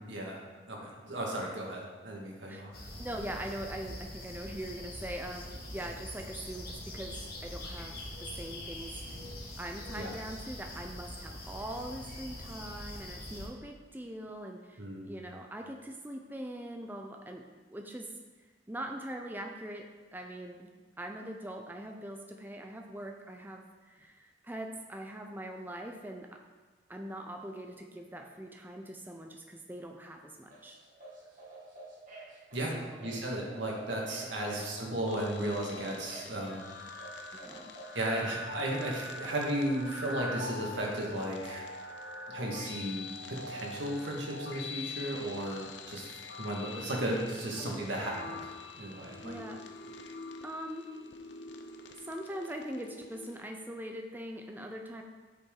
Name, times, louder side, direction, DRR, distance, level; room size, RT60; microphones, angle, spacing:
voice 1, 0.1-0.4 0.7-2.7 10.0-10.1 14.8-15.2 32.5-32.7 33.0-36.6 37.9-41.7 42.3-46.1 46.4-48.5 48.8-49.3, right 1 dB, 85° right, -2 dB, 2.0 m, -35 dB
sound 1, 2.7-13.5, left 1 dB, 55° left, 1.8 m, -43 dB
voice 2, 3.0-9.0 9.6-18.2 18.7-20.7 21.0-26.4 26.9-30.8 32.7-33.2 34.4-34.7 37.4-37.7 45.6-45.8 47.6-47.8 49.2-49.6 50.4-50.9 52.0-55.0, right 1 dB, 10° right, 3 dB, 0.5 m, -42 dB
sound 2, 30.5-38.4, right 2 dB, 45° right, 2.2 m, -50 dB
sound 3, 35.1-53.4, left 2 dB, 70° left, 0.7 m, -44 dB
8.1 x 7.1 x 3.8 m, 1.3 s
head